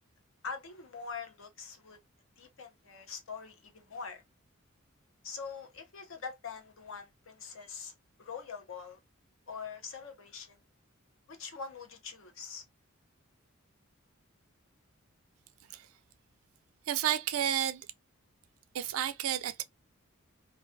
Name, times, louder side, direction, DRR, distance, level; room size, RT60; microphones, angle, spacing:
voice 1, 0.4-2.0 2.4-4.2 5.2-7.9 8.2-9.0 9.5-10.6 11.3-12.6, left 5 dB, 70° left, 0.7 m, -43 dB
voice 2, 16.9-17.8 18.7-19.6, right 10 dB, 85° right, 0.4 m, -31 dB
2.3 x 2.3 x 2.5 m
head